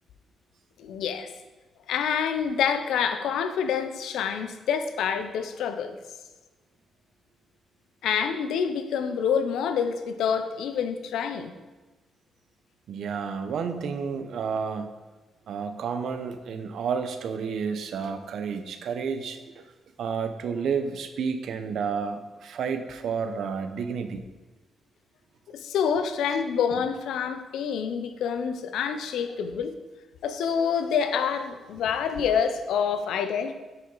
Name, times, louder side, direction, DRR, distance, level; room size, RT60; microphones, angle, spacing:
voice 1, 0.8-1.3 1.9-6.0 8.0-11.5 25.5-29.7 30.2-33.6, left 7 dB, 80° left, 9 dB, 0.7 m, -27 dB
voice 2, 12.9-15.0 15.5-19.6 20.0-24.2, right 6 dB, 70° right, 8 dB, 0.8 m, -31 dB
9.3 x 6.5 x 4.0 m, 1.2 s
supercardioid pair, 50°, 0 cm